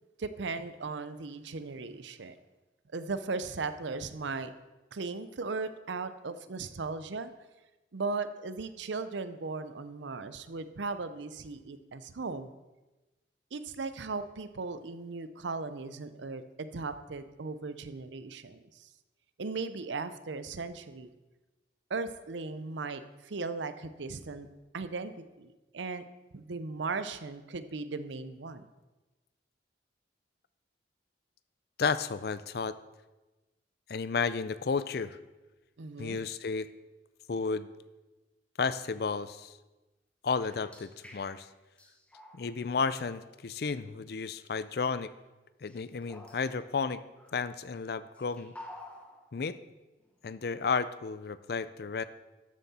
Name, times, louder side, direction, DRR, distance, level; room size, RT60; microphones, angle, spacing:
voice 1, 0.2-2.4 2.9-4.5 4.9-7.3 7.9-12.5 13.5-18.9 19.4-21.1 21.9-24.5 24.7-26.0 26.3-28.7 35.8-36.2, right 4 dB, 80° right, 12 dB, 0.6 m, -37 dB
voice 2, 31.8-32.7 33.9-35.2 36.0-36.7 37.3-37.7 38.6-39.6 40.2-41.5 42.3-45.1 45.6-47.0 47.3-48.5 49.3-49.6 50.2-52.0, left 5 dB, 55° left, 15 dB, 0.4 m, -32 dB
sound 1, 40.5-41.5 41.8-42.8 43.7-43.8 44.8-45.2 45.7-47.6 48.1-49.5 50.0-50.2 50.6-50.8, left 1 dB, 5° left, 1.0 m, -52 dB
12.5 x 7.4 x 4.2 m, 1.1 s
head